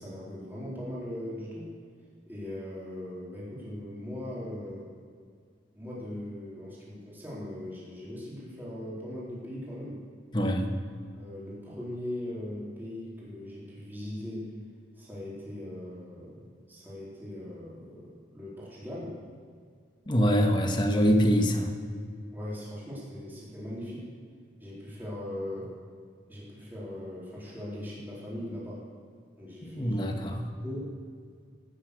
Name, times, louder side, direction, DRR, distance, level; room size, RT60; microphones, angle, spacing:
voice 1, 0.0-1.8 2.3-4.9 5.7-10.1 11.1-14.5 15.0-19.2 22.3-24.1 24.6-25.8 26.3-28.9 29.4-30.9, left 1 dB, 10° right, -7 dB, 3.9 m, -40 dB
voice 2, 10.3-10.7 20.1-21.7 29.6-30.5, equal, 25° left, 4 dB, 1.3 m, -24 dB
16.5 x 9.6 x 6.5 m, 2.1 s
head